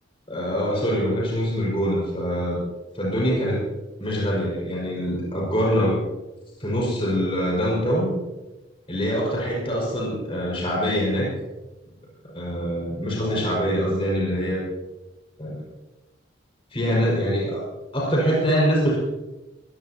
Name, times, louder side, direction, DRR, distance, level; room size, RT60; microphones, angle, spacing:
voice 1, 0.3-2.6 2.9-3.6 4.0-6.0 6.6-8.1 8.9-11.3 12.2-14.6 15.4-15.6 16.7-17.7 17.9-19.0, equal, 30° left, -4 dB, 5.6 m, -24 dB
20.5 x 16.5 x 2.9 m, 1.1 s
head